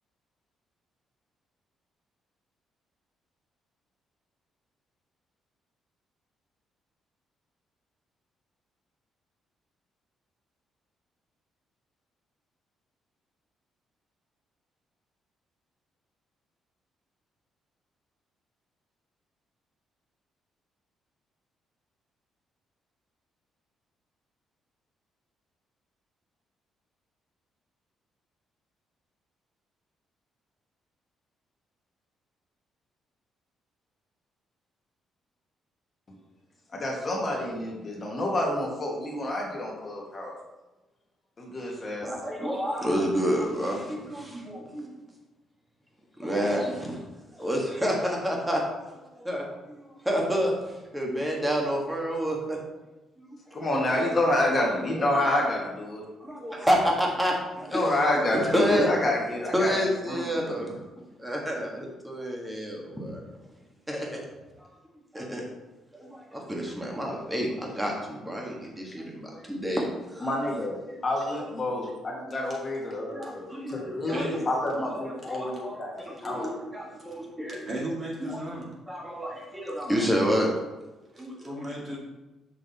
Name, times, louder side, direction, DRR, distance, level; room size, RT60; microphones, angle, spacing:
voice 1, 36.7-40.3 41.4-42.1 53.5-56.0 57.7-59.7 60.1-60.6 70.2-76.5, left 1 dB, 30° left, -1 dB, 1.6 m, -28 dB
voice 2, 42.0-44.9 46.2-47.0 47.3-48.6 48.9-52.6 53.2-53.6 53.9-54.0 54.9-55.1 56.2-58.9 59.5-63.2 63.9-64.3 64.6-64.7 65.1-65.4 65.9-70.5 70.9-71.0 72.1-72.2 72.9-74.2 74.9-77.6 78.2-78.4 78.9-80.6 81.1-81.7, equal, 5° right, -1 dB, 1.6 m, -29 dB
voice 3, 73.2-73.5 74.1-74.5 75.2-75.6 76.0-78.7 81.1-82.0, right 1 dB, 35° right, -3 dB, 2.1 m, -38 dB
6.2 x 5.9 x 4.1 m, 1.1 s
cardioid pair, 125°, 0 cm